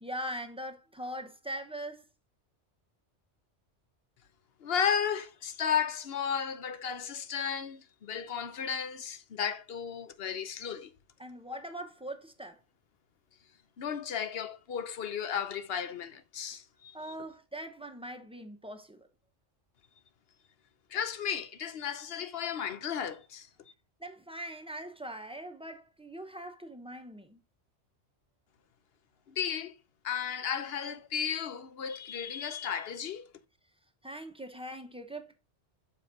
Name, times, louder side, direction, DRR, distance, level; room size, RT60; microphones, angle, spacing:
voice 1, 0.0-2.1 11.2-12.6 16.9-19.1 24.0-27.4 34.0-35.4, right 1 dB, 5° right, 0.7 m, -41 dB
voice 2, 4.6-10.9 13.8-17.1 20.9-23.5 29.3-29.7 30.0-33.3, left 7 dB, 60° left, 0.9 m, -34 dB
6.5 x 4.9 x 3.9 m
omnidirectional pair, 1.2 m